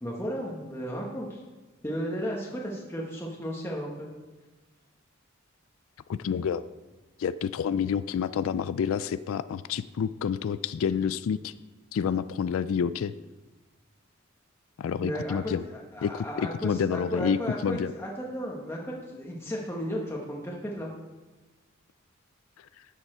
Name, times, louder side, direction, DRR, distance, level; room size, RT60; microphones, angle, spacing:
voice 1, 0.0-1.4 1.8-4.1 15.0-15.5 15.9-20.9, equal, 15° left, -3 dB, 1.2 m, -34 dB
voice 2, 6.1-6.6 7.2-11.5 11.9-13.1 14.8-15.6 16.0-17.9 22.6-22.9, left 7 dB, 85° left, 14 dB, 0.3 m, -29 dB
12.5 x 7.3 x 4.4 m, 1.2 s
head